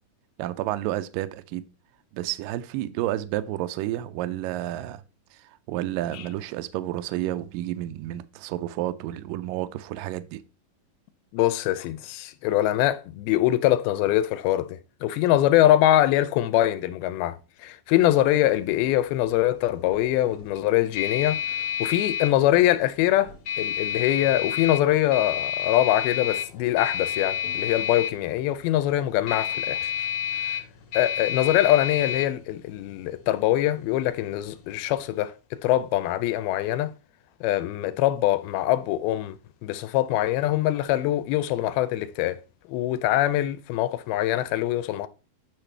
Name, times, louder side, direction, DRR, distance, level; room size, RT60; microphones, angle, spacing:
voice 1, 0.4-1.6 2.1-5.0 5.3-10.4, right 14 dB, 85° right, 2.0 m, -30 dB
voice 2, 11.3-21.4 21.8-30.1 30.4-30.6 30.9-35.3 35.6-36.9 37.4-42.4 42.7-45.1, left 14 dB, 85° left, 2.4 m, -23 dB
sound 1, 18.3-35.0, left 9 dB, 50° left, 1.6 m, -31 dB
8.8 x 5.8 x 3.3 m
omnidirectional pair, 4.5 m